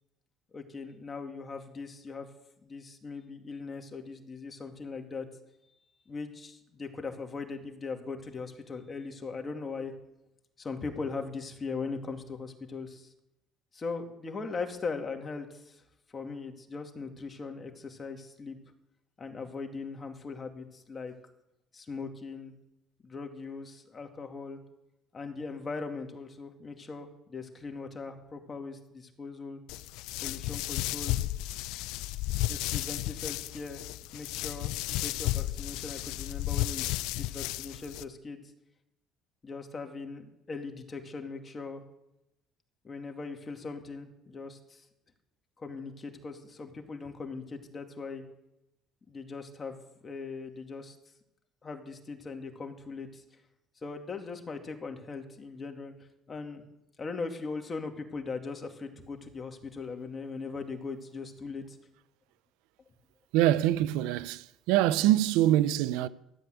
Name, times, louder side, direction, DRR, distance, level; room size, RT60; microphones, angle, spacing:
voice 1, 0.5-2.3 2.6-5.3 6.1-9.9 10.6-13.1 13.7-15.8 16.1-18.6 19.2-21.1 21.7-22.5 23.0-24.6 25.1-29.6 30.2-31.2 32.5-33.8 34.1-38.4 39.4-41.8 42.8-44.8 45.6-48.2 49.1-51.0 51.6-53.4 53.8-55.9 56.3-56.6 57.0-61.8, left 4 dB, 30° left, 2.3 m, -40 dB
sound 1, 29.7-38.0, left 17 dB, 80° left, 0.4 m, -33 dB
voice 2, 63.3-66.1, right 13 dB, 85° right, 0.6 m, -24 dB
13.5 x 8.2 x 9.4 m
supercardioid pair, 90°, 0 cm